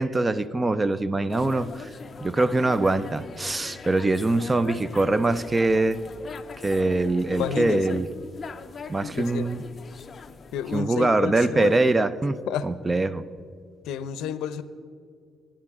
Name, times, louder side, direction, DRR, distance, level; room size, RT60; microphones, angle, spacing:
voice 1, 0.0-1.9 2.2-6.0 6.6-8.1 8.9-9.6 10.7-13.2, right 2 dB, 20° right, 0.4 m, -23 dB
sound 1, 1.3-10.8, left 5 dB, 35° left, 0.5 m, -41 dB
voice 2, 7.3-8.0 9.1-9.5 10.5-11.8 12.5-12.7 13.8-14.6, left 8 dB, 85° left, 0.5 m, -30 dB
16.0 x 10.0 x 3.6 m
cardioid pair, 110°, 0 cm